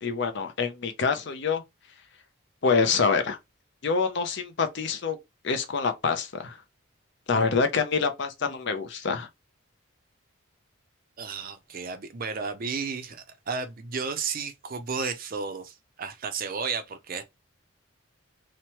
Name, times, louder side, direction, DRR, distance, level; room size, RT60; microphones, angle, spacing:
voice 1, 0.0-1.6 2.6-3.4 3.8-5.2 5.4-6.6 7.3-9.3, left 5 dB, 55° left, 0.5 m, -26 dB
voice 2, 11.2-17.2, right 5 dB, 45° right, 0.4 m, -33 dB
3.0 x 2.1 x 2.8 m
head